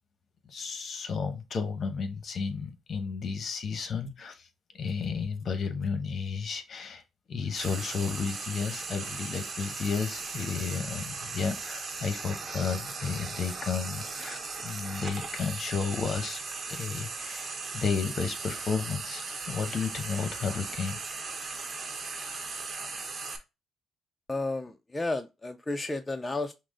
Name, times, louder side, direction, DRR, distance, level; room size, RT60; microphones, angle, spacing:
voice 1, 0.4-4.5 4.7-7.0 7.3-16.4 16.7-21.3, left 5 dB, 55° left, 0.9 m, -33 dB
Frying (food), 7.5-23.4, right 4 dB, 40° right, 1.0 m, -38 dB
voice 2, 24.3-26.5, left 2 dB, 15° left, 0.4 m, -32 dB
5.8 x 2.1 x 3.7 m
cardioid pair, 90°, 0 cm